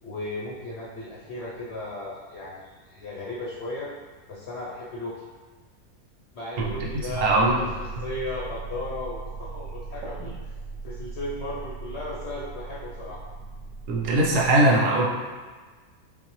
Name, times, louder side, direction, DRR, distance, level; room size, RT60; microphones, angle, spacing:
voice 1, 0.0-3.9 4.3-5.3 6.3-10.3 10.8-13.2, left 2 dB, 60° left, -6 dB, 0.7 m, -35 dB
sound 1, 6.5-14.5, right 3 dB, 60° right, 0.9 m, -38 dB
voice 2, 7.2-7.7 13.9-15.0, right 2 dB, 80° right, -3 dB, 1.3 m, -20 dB
5.5 x 2.0 x 3.1 m, 1.4 s
omnidirectional pair, 1.7 m